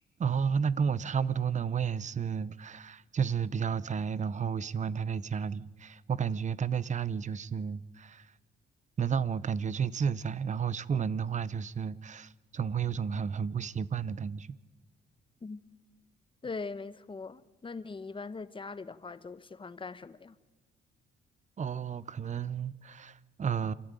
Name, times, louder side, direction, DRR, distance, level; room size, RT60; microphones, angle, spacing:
voice 1, 0.2-8.2 9.0-14.6 21.6-23.7, right 7 dB, 35° right, 0.7 m, -32 dB
voice 2, 16.4-20.4, left 4 dB, 25° left, 1.0 m, -41 dB
27.0 x 12.5 x 9.0 m
cardioid pair, 90°, 20 cm